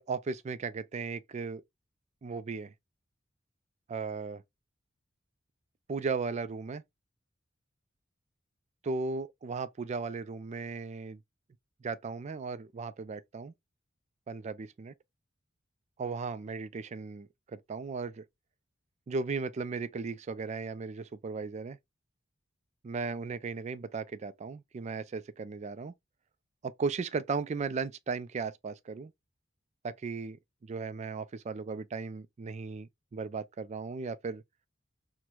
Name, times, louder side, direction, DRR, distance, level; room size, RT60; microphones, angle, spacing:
voice 1, 0.0-1.6 2.2-2.7 3.9-4.4 5.9-6.8 8.8-11.2 11.8-13.5 14.3-14.9 16.0-18.2 19.1-21.8 22.8-25.9 26.6-29.1 29.8-34.4, right 4 dB, 35° right, 0.3 m, -36 dB
4.4 x 2.1 x 2.2 m
head